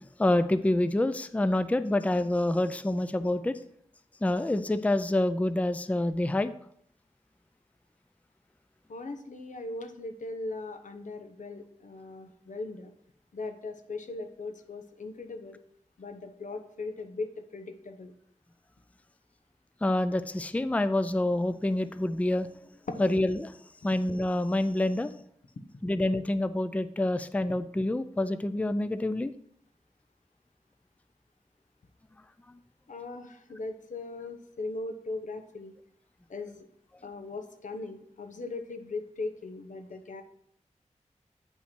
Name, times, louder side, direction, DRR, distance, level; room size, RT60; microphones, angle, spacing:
voice 1, 0.2-3.6 4.2-6.5 19.8-22.5 23.0-23.5 23.8-25.1 25.8-29.3, left 1 dB, 10° left, 12 dB, 0.4 m, -27 dB
voice 2, 8.9-12.9 13.3-15.6 16.0-18.1 22.9-23.1 32.9-35.7 36.3-36.6 37.0-40.2, left 3 dB, 85° left, 6 dB, 1.0 m, -39 dB
8.9 x 5.6 x 4.4 m, 0.67 s
wide cardioid pair, 90°, 13 cm